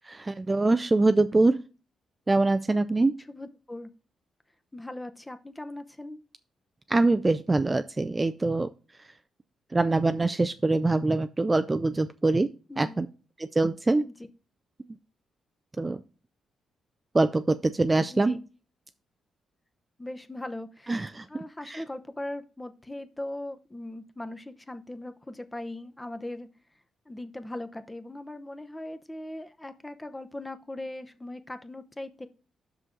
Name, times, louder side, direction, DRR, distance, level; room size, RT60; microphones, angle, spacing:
voice 1, 0.1-1.6 2.3-3.1 6.9-8.7 9.7-12.5 12.8-13.1 13.6-14.0 15.8-16.0 17.1-18.3 20.9-21.2 21.6-21.8, right 2 dB, 20° right, 10 dB, 0.3 m, -24 dB
voice 2, 3.3-3.9 4.7-6.2 12.7-13.1 14.0-14.1 18.1-18.4 20.0-21.0 21.3-26.5 27.1-32.3, left 1 dB, 10° left, 9 dB, 0.8 m, -39 dB
7.5 x 6.2 x 3.8 m, 0.34 s
cardioid pair, 105°, 0 cm